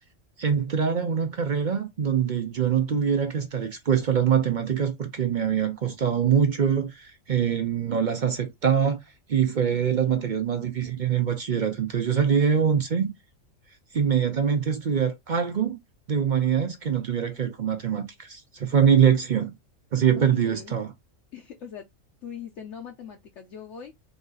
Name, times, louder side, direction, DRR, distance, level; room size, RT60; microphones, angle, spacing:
voice 1, 0.4-9.0 9.3-13.1 13.9-15.8 16.1-19.6 19.9-20.9, right 7 dB, 50° right, 0.6 m, -24 dB
voice 2, 9.7-10.2 20.1-20.7 21.3-21.9 22.2-23.9, left 8 dB, 65° left, 1.0 m, -41 dB
4.0 x 2.6 x 3.8 m
omnidirectional pair, 1.4 m